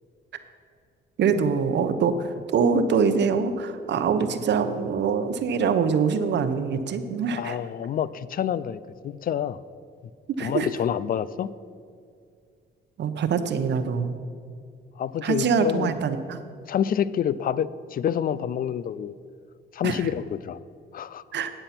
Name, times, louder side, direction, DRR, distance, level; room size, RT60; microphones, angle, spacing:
voice 1, 1.2-7.6 10.3-10.7 13.0-14.2 15.2-16.4 19.8-20.1 21.3-21.5, right 6 dB, 60° right, 9 dB, 0.8 m, -24 dB
voice 2, 7.4-9.6 10.4-11.5 15.0-16.0 16.7-19.1 19.7-20.6 20.9-21.2, left 9 dB, 45° left, 18 dB, 0.4 m, -27 dB
9.0 x 7.9 x 5.8 m, 2.3 s
cardioid pair, 90°, 20 cm